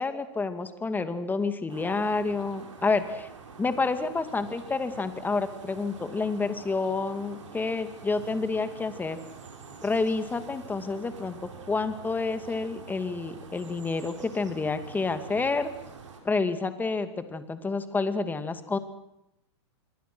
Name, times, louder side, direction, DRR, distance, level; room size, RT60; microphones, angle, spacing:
voice 1, 0.0-3.3 3.6-9.2 9.8-11.4 11.7-15.7 16.2-18.8, left 3 dB, 10° left, 9 dB, 2.3 m, -29 dB
sound 1, 1.7-16.2, right 5 dB, 85° right, 5.7 m, -46 dB
27.5 x 23.0 x 6.2 m, 0.84 s
hypercardioid pair, 120°, 15 cm